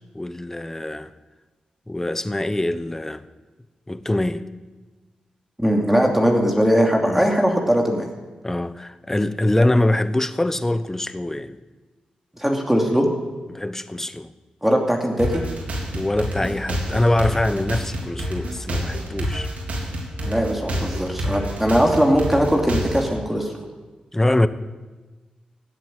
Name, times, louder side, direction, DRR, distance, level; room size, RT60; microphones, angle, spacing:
voice 1, 0.1-1.1 1.9-3.3 3.9-4.5 7.0-7.3 8.4-11.6 13.5-14.3 15.9-19.5 24.1-24.5, left 1 dB, 15° left, 0.9 m, -23 dB
voice 2, 5.6-8.1 12.4-13.1 14.6-15.4 20.2-23.5, equal, 5° right, 2.5 m, -20 dB
sound 1, 15.2-23.1, equal, 65° right, 3.6 m, -28 dB
16.0 x 7.9 x 9.8 m
cardioid pair, 60°, 3 cm